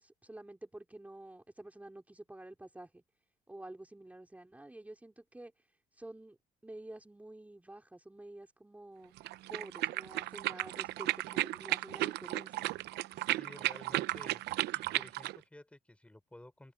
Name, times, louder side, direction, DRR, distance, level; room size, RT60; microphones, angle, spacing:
voice 1, 0.0-3.0 3.5-6.4 6.6-9.1 9.5-12.7, right 1 dB, 10° right, 4.4 m, -49 dB
sound 1, 9.2-15.4, right 16 dB, 80° right, 0.7 m, -34 dB
voice 2, 13.3-14.5 14.7-16.7, left 1 dB, 5° left, 5.7 m, -53 dB
open air
cardioid pair, 110°, 17 cm